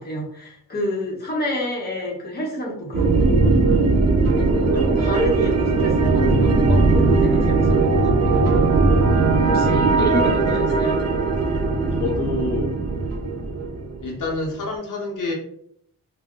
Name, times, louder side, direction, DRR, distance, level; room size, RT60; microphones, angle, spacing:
voice 1, 0.0-3.6 4.3-8.4 9.4-11.0, left 1 dB, 30° left, -2 dB, 0.8 m, -28 dB
sound 1, 2.9-14.3, right 3 dB, 50° right, 0.5 m, -19 dB
voice 2, 9.0-9.4 12.0-12.7 14.0-15.3, left 2 dB, 65° left, -2 dB, 0.7 m, -28 dB
2.3 x 2.1 x 3.6 m, 0.69 s
cardioid pair, 115°, 34 cm